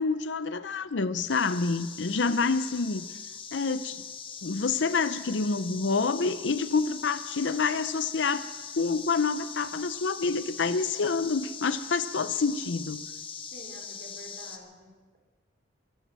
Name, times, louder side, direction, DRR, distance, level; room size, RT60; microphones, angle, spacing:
voice 1, 0.0-3.2 3.5-4.0 4.4-8.5 8.8-13.0, left 4 dB, 80° left, 13 dB, 0.7 m, -27 dB
sound 1, 1.3-14.6, left 6 dB, 30° left, 1.2 m, -41 dB
voice 2, 13.5-15.2, right 1 dB, 55° right, 1 dB, 3.8 m, -48 dB
23.0 x 8.1 x 7.6 m, 1.3 s
head